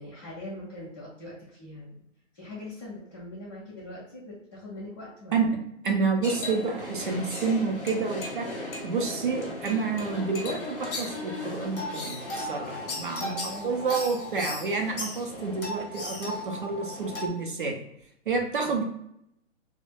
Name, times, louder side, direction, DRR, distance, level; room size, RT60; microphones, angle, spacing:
voice 1, 0.0-1.9 2.3-5.5 13.1-13.8 18.6-18.8, left 1 dB, 20° left, -12 dB, 0.5 m, -42 dB
voice 2, 5.8-8.5 8.8-17.8 18.3-18.8, right 4 dB, 45° right, 2 dB, 0.4 m, -29 dB
sound 1, 6.2-17.3, left 2 dB, 45° left, 0.9 m, -36 dB
2.2 x 2.0 x 3.2 m, 0.76 s
hypercardioid pair, 165°, 38 cm